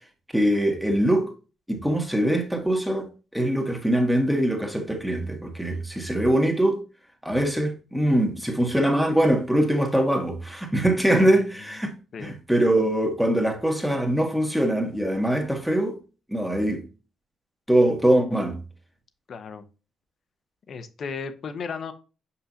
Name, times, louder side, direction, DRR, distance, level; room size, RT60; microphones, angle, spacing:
voice 1, 0.3-1.3 1.7-6.8 7.2-11.9 12.2-16.0 16.3-16.8 17.7-18.6, right 1 dB, 5° right, 1.7 m, -23 dB
voice 2, 19.3-19.6 20.7-21.9, left 5 dB, 55° left, 0.9 m, -35 dB
6.5 x 5.7 x 2.8 m
cardioid pair, 90°, 0 cm